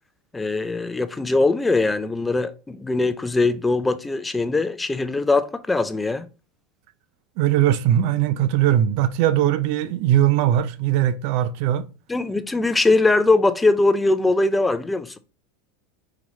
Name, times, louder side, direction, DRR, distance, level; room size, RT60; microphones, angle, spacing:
voice 1, 0.3-6.3 12.1-15.2, left 3 dB, 10° left, 0.4 m, -21 dB
voice 2, 7.4-11.8, right 11 dB, 60° right, 0.4 m, -20 dB
3.8 x 3.0 x 3.1 m
hypercardioid pair, 100°, 0 cm